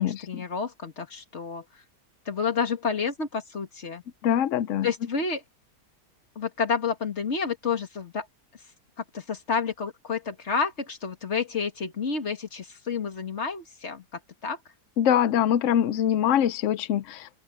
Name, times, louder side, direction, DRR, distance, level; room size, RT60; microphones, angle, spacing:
voice 1, 0.0-1.6 2.3-4.0 4.8-5.4 6.4-8.3 9.1-14.0 14.4-14.6, left 5 dB, 40° left, 2.3 m, -29 dB
voice 2, 4.2-4.9 15.0-17.3, left 10 dB, 65° left, 0.7 m, -23 dB
open air
omnidirectional pair, 1.8 m